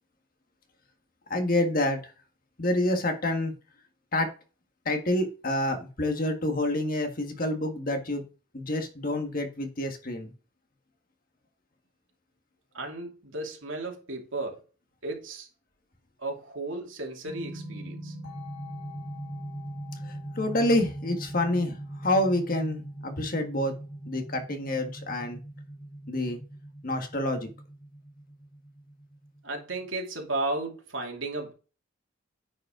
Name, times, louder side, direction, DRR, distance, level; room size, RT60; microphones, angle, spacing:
voice 1, 1.3-2.1 2.6-3.5 4.1-4.3 4.8-8.2 8.5-10.3 20.0-23.7 24.0-25.4 26.1-26.4 26.8-27.5, left 1 dB, 45° left, 1.7 m, -28 dB
voice 2, 12.7-14.6 15.0-15.5 16.2-18.1 29.4-31.5, right 2 dB, 85° right, 2.5 m, -34 dB
sound 1, 17.2-29.9, right 1 dB, 80° left, 4.3 m, -41 dB
9.6 x 5.4 x 3.7 m
head